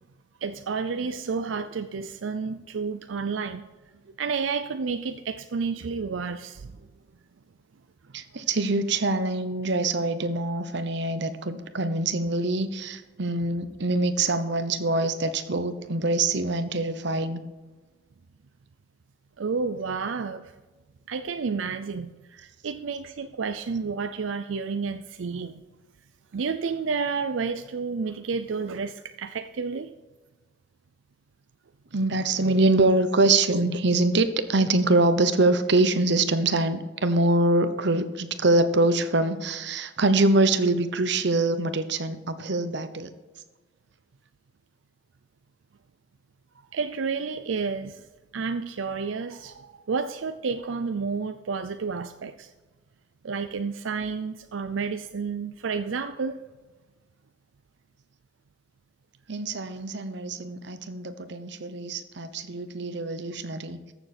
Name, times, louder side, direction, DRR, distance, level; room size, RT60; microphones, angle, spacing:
voice 1, 0.4-3.7 4.2-6.8 19.4-20.5 21.1-25.6 26.3-29.9 46.7-48.0 48.3-52.5 53.2-56.4, right 5 dB, 85° right, 9 dB, 0.5 m, -30 dB
voice 2, 8.1-17.4 31.9-43.1 59.3-63.9, right 2 dB, 65° right, 10 dB, 0.9 m, -24 dB
14.0 x 7.1 x 4.3 m, 1.2 s
head